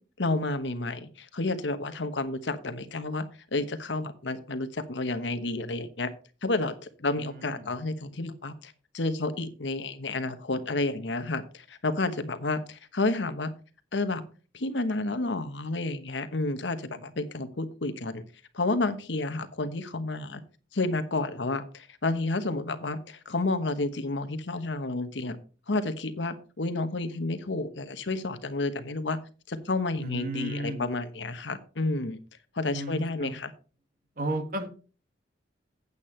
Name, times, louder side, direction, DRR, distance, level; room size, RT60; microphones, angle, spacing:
voice 1, 0.2-3.2 3.5-6.1 6.4-13.5 13.9-14.2 14.5-18.2 18.5-20.4 20.7-25.4 25.7-29.2 29.5-32.2 32.5-33.5, left 2 dB, 75° left, 11 dB, 1.1 m, -30 dB
voice 2, 7.1-7.7 30.0-30.9 32.7-33.3 34.2-34.9, right 1 dB, 50° right, 7 dB, 1.7 m, -34 dB
8.6 x 8.4 x 4.4 m, 0.37 s
head